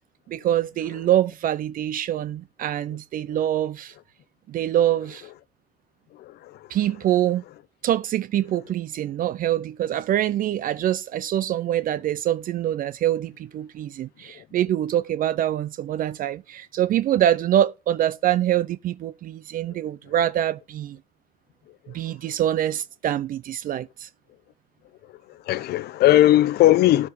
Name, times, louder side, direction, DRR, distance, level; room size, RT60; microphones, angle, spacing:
voice 1, 0.3-3.9 4.5-5.3 6.7-7.4 7.8-21.0 21.9-24.1, right 11 dB, 55° right, 0.5 m, -24 dB
voice 2, 6.2-6.6 25.5-27.1, left 14 dB, 70° left, 0.8 m, -18 dB
12.5 x 4.7 x 5.4 m
cardioid pair, 110°, 17 cm